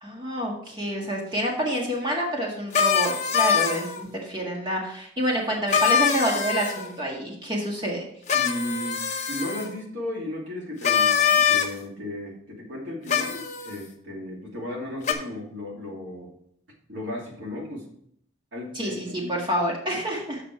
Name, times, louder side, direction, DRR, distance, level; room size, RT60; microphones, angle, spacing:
voice 1, 0.0-8.0 18.8-20.4, equal, 25° right, -1 dB, 1.8 m, -28 dB
sound 1, 2.7-4.0 5.7-6.9 8.3-9.7 10.8-11.7 13.1-13.8 15.0-15.1, left 7 dB, 35° left, 0.9 m, -23 dB
voice 2, 8.3-16.3 16.9-18.0 18.5-19.4, left 1 dB, 70° right, -2 dB, 2.6 m, -35 dB
7.6 x 5.8 x 4.5 m, 0.66 s
head